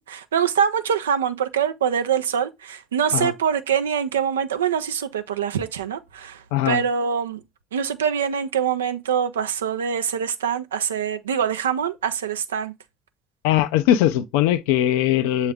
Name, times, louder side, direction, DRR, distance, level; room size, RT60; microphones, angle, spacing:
voice 1, 0.1-7.4 7.7-12.7, right 7 dB, 90° right, 0.3 m, -24 dB
voice 2, 6.5-6.8 13.4-15.5, left 12 dB, 75° left, 0.3 m, -20 dB
6.7 x 2.4 x 3.3 m
hypercardioid pair, 60°, 0 cm